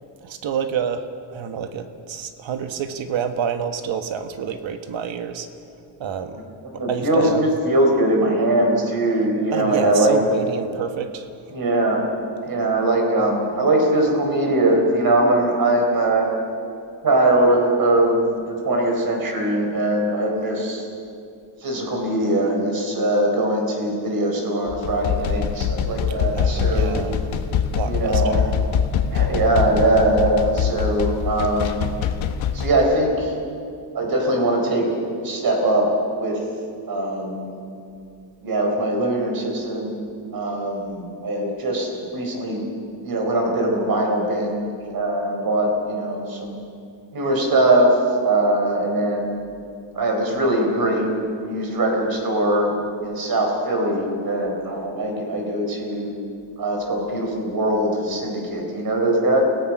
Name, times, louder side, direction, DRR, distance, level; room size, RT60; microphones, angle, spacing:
voice 1, 0.2-1.1 1.3-5.5 6.0-6.4 6.9-7.4 9.5-11.3 26.3-27.2 27.7-28.6, right 7 dB, 70° right, 8 dB, 1.6 m, -28 dB
voice 2, 6.7-10.2 11.5-12.0 12.5-16.3 17.0-18.2 18.5-20.8 21.6-27.0 27.8-28.4 29.1-31.9 32.5-33.3 33.9-34.9 35.2-36.4 36.9-37.5 38.4-40.0 40.3-42.6 43.0-44.6 44.9-46.6 47.1-47.9 48.2-49.4 49.9-51.1 51.4-56.1 56.6-59.4, right 1 dB, 45° right, 1 dB, 4.4 m, -21 dB
sound 1, 24.7-32.9, left 7 dB, 80° left, 1.5 m, -24 dB
29.0 x 18.0 x 6.2 m, 2.5 s
wide cardioid pair, 170°, 47 cm